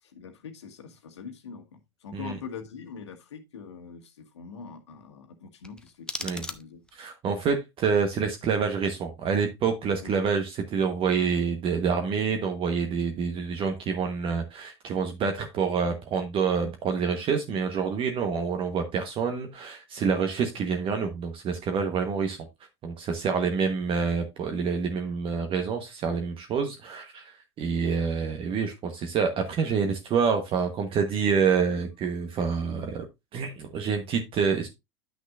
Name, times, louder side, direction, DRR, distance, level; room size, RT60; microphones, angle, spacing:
voice 1, 0.0-6.8 10.0-10.1, left 6 dB, 75° left, 1.5 m, -43 dB
sound 1, 5.6-7.1, left 2 dB, 5° left, 0.8 m, -38 dB
voice 2, 6.9-22.5 22.8-33.0 33.3-34.7, right 6 dB, 35° right, 1.2 m, -27 dB
10.5 x 6.2 x 2.5 m
figure-of-eight pair, 80°, 15 cm